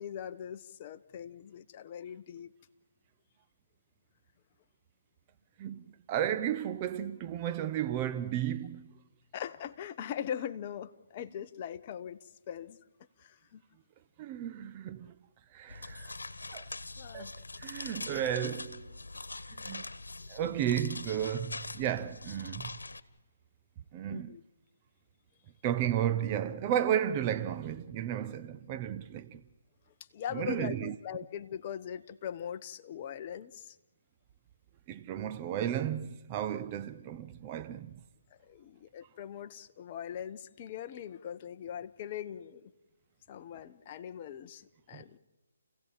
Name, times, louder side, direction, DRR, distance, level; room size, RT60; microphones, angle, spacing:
voice 1, 0.0-2.5 9.3-12.8 13.2-13.6 17.0-17.3 24.1-24.4 30.1-33.8 38.4-42.7 43.3-45.2, left 9 dB, 35° left, 1.0 m, -41 dB
voice 2, 5.6-9.0 14.2-15.2 15.5-16.1 16.5-16.7 17.1-17.3 17.6-18.9 19.5-19.8 20.3-22.8 23.9-24.4 25.6-29.4 30.3-30.9 34.9-38.0 44.9-45.0, right 10 dB, 25° right, 0.7 m, -33 dB
sound 1, 15.7-23.0, left 3 dB, 85° left, 1.3 m, -43 dB
29.5 x 16.5 x 7.3 m
figure-of-eight pair, 150°, 0 cm